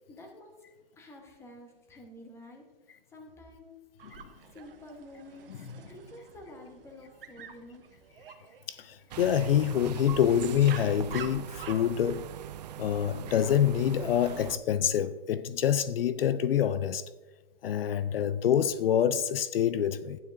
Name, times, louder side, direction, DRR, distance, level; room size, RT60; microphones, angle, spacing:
voice 1, 0.1-0.6 1.0-2.7 3.1-3.8 4.5-7.8, left 1 dB, 10° left, 1.1 m, -49 dB
Dog, 4.0-14.6, right 7 dB, 70° right, 1.0 m, -49 dB
voice 2, 8.7-12.3 12.8-17.0 17.6-20.2, left 9 dB, 75° left, 0.5 m, -26 dB
sound 1, 9.1-14.6, right 11 dB, 45° right, 0.4 m, -41 dB
11.5 x 9.2 x 2.6 m
hypercardioid pair, 150°, 29 cm